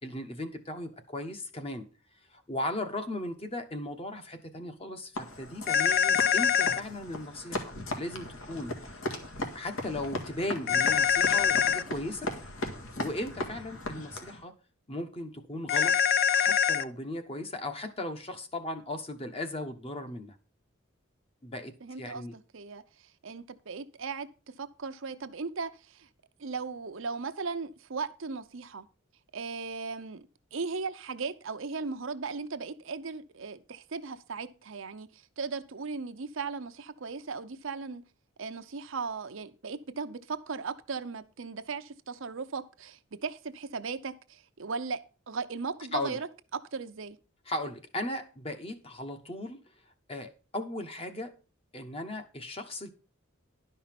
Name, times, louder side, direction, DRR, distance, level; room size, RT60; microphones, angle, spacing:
voice 1, 0.0-1.9 2.3-9.0 9.4-12.3 13.0-14.5 14.9-16.0 16.3-20.4 21.4-21.7 22.0-22.3 45.9-46.2 47.5-49.6 50.1-51.3 51.7-52.9, left 1 dB, 25° left, 1.1 m, -37 dB
sound 1, 5.2-14.4, left 1 dB, 75° left, 1.9 m, -38 dB
sound 2, 5.7-6.8 10.7-11.8 15.7-16.8, left 8 dB, 45° left, 0.5 m, -24 dB
voice 2, 21.8-22.8 23.2-24.3 24.6-26.1 26.4-28.9 29.3-30.3 30.5-38.0 38.4-45.0 45.3-46.3 46.5-47.2, right 4 dB, 70° right, 0.7 m, -37 dB
11.5 x 5.5 x 5.9 m
head